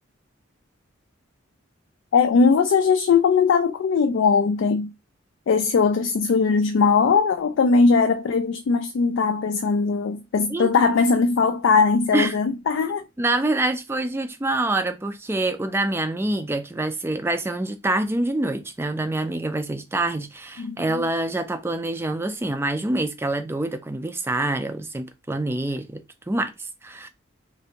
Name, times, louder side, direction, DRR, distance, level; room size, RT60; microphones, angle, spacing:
voice 1, 2.1-4.9 5.5-13.0 20.6-21.0, left 5 dB, 70° left, 0.3 m, -20 dB
voice 2, 13.2-26.0 26.3-26.5 26.8-27.1, right 2 dB, 10° right, 0.3 m, -26 dB
3.3 x 2.6 x 2.8 m
head